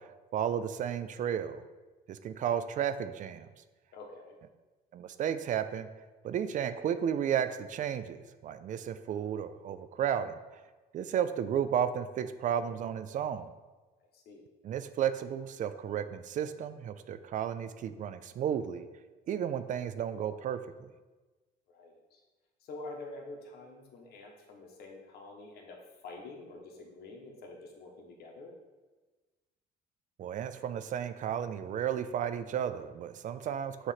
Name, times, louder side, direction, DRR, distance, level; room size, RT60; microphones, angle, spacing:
voice 1, 0.0-1.6 2.1-3.5 4.9-5.9 6.2-8.2 8.4-10.4 10.9-13.5 14.6-18.9 19.3-20.9 30.2-33.9, right 9 dB, 50° right, 12 dB, 0.4 m, -33 dB
voice 2, 3.9-4.4 14.1-14.4 21.7-22.2 22.6-28.5, left 2 dB, 70° left, 1 dB, 1.3 m, -47 dB
6.3 x 3.1 x 5.7 m, 1.2 s
cardioid pair, 110°, 17 cm